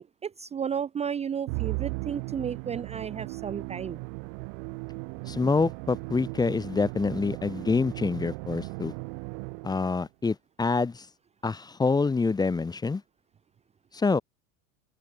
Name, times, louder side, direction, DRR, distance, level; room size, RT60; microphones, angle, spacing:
voice 1, 0.0-4.0, right 7 dB, 15° right, 0.8 m, -33 dB
Musical instrument, 1.5-10.0, right 40 dB or more, 55° right, 1.6 m, -37 dB
voice 2, 5.3-8.9 9.6-11.1 11.4-13.0 13.9-14.2, left 4 dB, 10° left, 1.2 m, -26 dB
open air
supercardioid pair, 150°, 41 cm